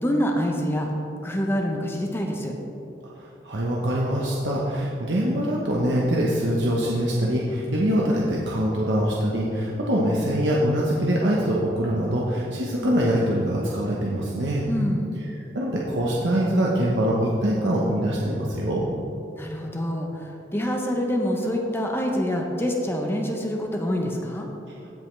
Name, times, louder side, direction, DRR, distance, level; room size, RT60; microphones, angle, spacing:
voice 1, 0.0-0.9 1.2-2.5 14.7-15.1 19.4-24.5, equal, 15° left, 1 dB, 0.7 m, -26 dB
voice 2, 3.2-14.7 15.5-18.8, equal, 70° right, -4 dB, 1.0 m, -24 dB
16.0 x 5.6 x 3.2 m, 2.8 s
head